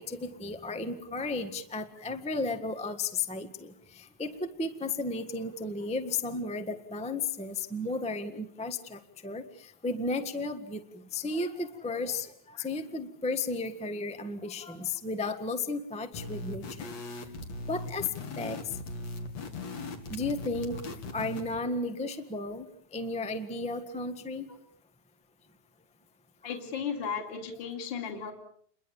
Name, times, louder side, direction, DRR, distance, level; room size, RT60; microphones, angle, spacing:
voice 1, 0.0-16.9 17.7-18.1 18.4-18.6 20.1-20.8 21.1-22.7 22.9-24.5, left 3 dB, 5° left, 7 dB, 0.8 m, -34 dB
sound 1, 16.1-21.6, left 2 dB, 65° left, 3.8 m, -39 dB
voice 2, 26.4-28.3, left 6 dB, 40° left, 4 dB, 3.1 m, -35 dB
29.0 x 22.5 x 7.2 m, 0.62 s
omnidirectional pair, 3.3 m